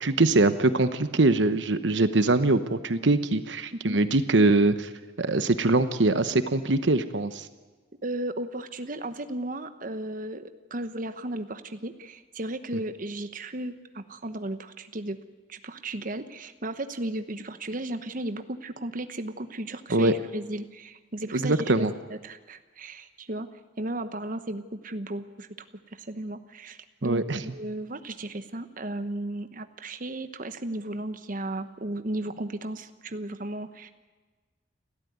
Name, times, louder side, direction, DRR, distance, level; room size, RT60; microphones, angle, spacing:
voice 1, 0.0-4.9 5.2-7.5 19.9-20.1 21.3-21.9 27.0-27.4, right 2 dB, 75° right, 11 dB, 1.0 m, -23 dB
voice 2, 8.0-15.2 15.5-23.5 23.8-25.7 25.9-33.9, right 1 dB, 45° right, 9 dB, 1.1 m, -35 dB
29.5 x 13.5 x 9.5 m, 1.3 s
head